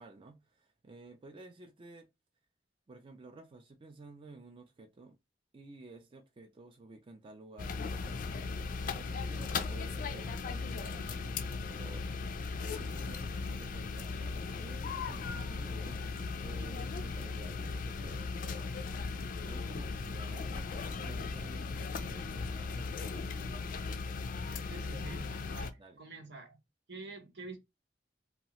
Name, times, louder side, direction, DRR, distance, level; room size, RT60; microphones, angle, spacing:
voice 1, 0.0-2.1 2.9-5.1 5.5-8.2 8.8-12.0 12.6-18.8 19.4-23.4 25.8-26.0, right 2 dB, 30° right, 0.4 m, -53 dB
sound 1, 7.6-25.7, left 4 dB, 50° left, 0.4 m, -37 dB
voice 2, 24.7-26.6 26.9-27.6, right 3 dB, 85° right, 0.8 m, -47 dB
2.9 x 2.3 x 2.9 m
head